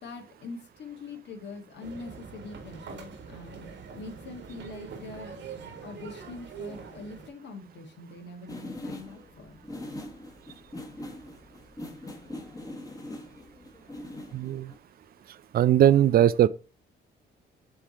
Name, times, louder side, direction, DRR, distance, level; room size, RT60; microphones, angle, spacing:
voice 1, 0.0-5.3 5.8-9.5, left 3 dB, 60° left, 1.8 m, -43 dB
sound 1, 1.8-7.3, right 6 dB, 65° right, 1.5 m, -43 dB
sound 2, 8.5-14.8, left 1 dB, 15° left, 1.5 m, -42 dB
voice 2, 14.3-14.7 15.5-16.5, right 11 dB, 50° right, 0.4 m, -20 dB
7.5 x 3.3 x 4.2 m
cardioid pair, 90°, 20 cm